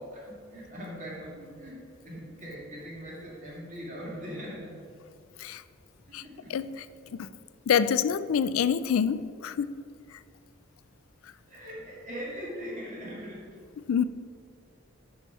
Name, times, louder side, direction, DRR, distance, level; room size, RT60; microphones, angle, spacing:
voice 1, 0.0-4.7 6.1-6.6 11.5-13.6, equal, 35° right, -4 dB, 2.4 m, -41 dB
voice 2, 6.5-6.9 7.1-7.3 7.7-9.7 10.1-10.2 13.9-14.0, left 7 dB, 80° left, 14 dB, 0.3 m, -26 dB
11.0 x 5.6 x 4.7 m, 2.3 s
head